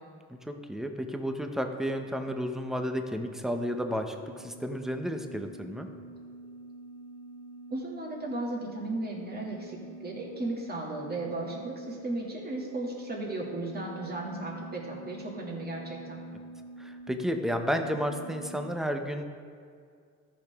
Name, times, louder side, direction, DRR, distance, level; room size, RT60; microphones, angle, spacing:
voice 1, 0.3-5.9 16.8-19.2, equal, ahead, 5 dB, 0.8 m, -32 dB
sound 1, 2.5-18.6, right 2 dB, 45° left, 1.2 m, -47 dB
voice 2, 7.7-16.2, right 2 dB, 30° right, -3 dB, 2.4 m, -35 dB
13.5 x 5.9 x 3.6 m, 2.3 s
cardioid pair, 90°, 30 cm